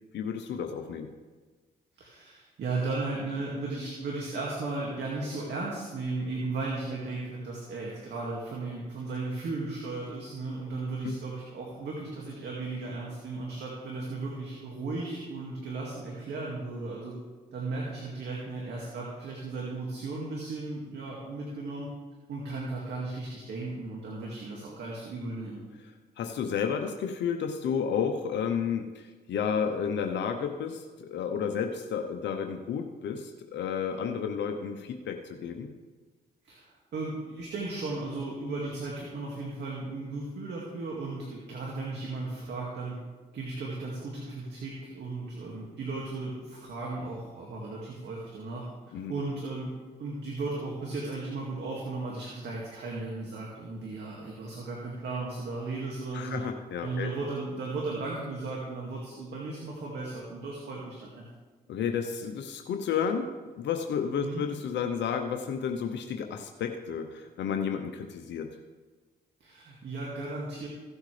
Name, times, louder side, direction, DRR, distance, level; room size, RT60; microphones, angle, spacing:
voice 1, 0.1-1.1 11.0-11.1 26.2-35.7 48.9-49.1 56.1-57.1 61.7-68.5, left 7 dB, 75° left, 5 dB, 0.8 m, -31 dB
voice 2, 2.0-17.2 17.5-21.9 22.3-25.6 36.4-43.0 43.3-49.7 50.0-56.4 56.8-61.3 64.2-64.4 69.4-70.7, right 3 dB, 70° right, -3 dB, 2.1 m, -36 dB
16.0 x 8.0 x 3.3 m, 1.3 s
supercardioid pair, 60°, 18 cm